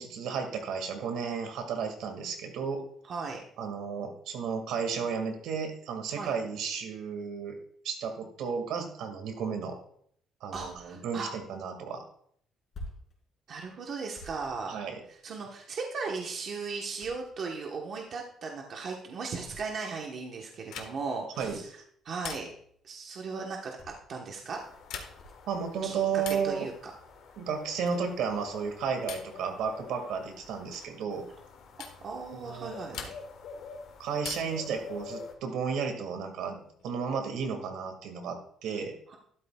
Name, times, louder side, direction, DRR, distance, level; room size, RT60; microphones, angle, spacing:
voice 1, 0.0-2.8 3.6-7.6 7.8-9.8 10.4-12.0 14.7-15.0 21.4-21.6 25.5-26.7 27.4-31.2 32.4-33.0 34.0-38.9, right 6 dB, 75° right, 5 dB, 2.0 m, -33 dB
voice 2, 3.1-3.4 6.1-6.3 10.5-11.3 13.5-14.8 15.2-21.6 22.0-22.5 22.8-24.6 25.8-26.7 32.0-33.1 39.1-39.2, right 4 dB, 40° right, 0 dB, 1.1 m, -37 dB
sound 1, 10.5-10.9 12.7-13.1 14.1-15.3 17.0-17.6 19.4-19.7 21.4-21.8 23.8-24.2 25.2-25.4, left 1 dB, 35° left, 3.8 m, -47 dB
sound 2, 20.7-21.2 22.2-22.8 24.8-25.4 26.2-26.6 27.8-28.2 29.1-29.4 30.7-30.9 31.8-32.0 32.9-33.5 34.2-34.7 36.2-36.8, left 8 dB, 85° left, 1.4 m, -43 dB
sound 3, 24.5-35.3, left 4 dB, 65° left, 2.1 m, -47 dB
12.5 x 12.5 x 2.3 m, 0.64 s
cardioid pair, 175°, 0 cm